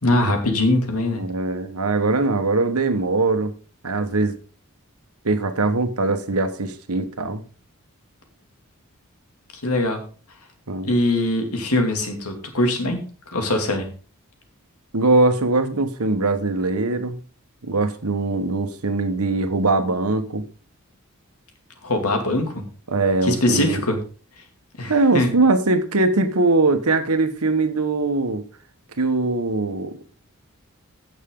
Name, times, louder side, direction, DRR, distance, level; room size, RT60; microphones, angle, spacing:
voice 1, 0.0-1.2 9.6-10.0 10.8-13.0 13.3-13.9 21.8-22.6 23.2-24.0 24.8-25.3, left 1 dB, 75° left, 2.6 m, -22 dB
voice 2, 1.2-3.5 3.8-4.3 5.2-7.4 10.7-10.9 14.9-17.2 17.6-20.4 22.9-23.8 24.9-28.4 29.0-30.0, right 3 dB, 80° right, 1.4 m, -21 dB
15.5 x 6.6 x 3.8 m
head